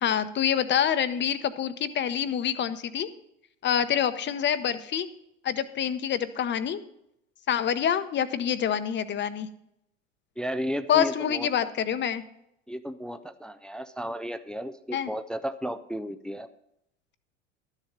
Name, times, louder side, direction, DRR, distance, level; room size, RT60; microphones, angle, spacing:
voice 1, 0.0-3.1 3.6-5.1 5.4-6.8 7.5-9.5 10.9-12.2 14.9-15.1, left 9 dB, 30° left, 13 dB, 0.8 m, -26 dB
voice 2, 10.4-11.5 12.7-16.5, equal, ahead, 11 dB, 0.3 m, -33 dB
12.0 x 7.4 x 5.3 m, 0.80 s
hypercardioid pair, 85°, 38 cm